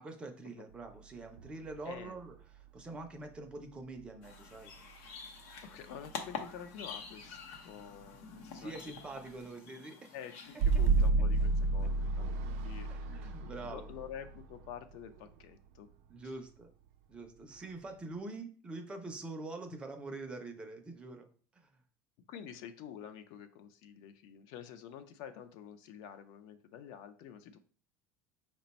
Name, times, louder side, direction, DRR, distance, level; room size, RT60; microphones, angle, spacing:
voice 1, 0.0-4.7 8.5-10.1 12.9-13.9 16.1-16.7 17.1-21.3 21.5-21.8, right 2 dB, 15° right, 4 dB, 0.4 m, -45 dB
sound 1, 1.4-2.3 4.0-4.1 10.6-15.3, right 3 dB, 80° right, 0.4 m, -31 dB
voice 2, 1.9-2.2 5.6-8.7 10.1-13.1 13.4-15.9 22.3-27.6, left 9 dB, 60° left, 9 dB, 0.4 m, -48 dB
sound 2, 4.2-11.1, left 5 dB, 90° left, 0.8 m, -47 dB
4.9 x 2.2 x 4.0 m, 0.42 s
cardioid pair, 170°, 7 cm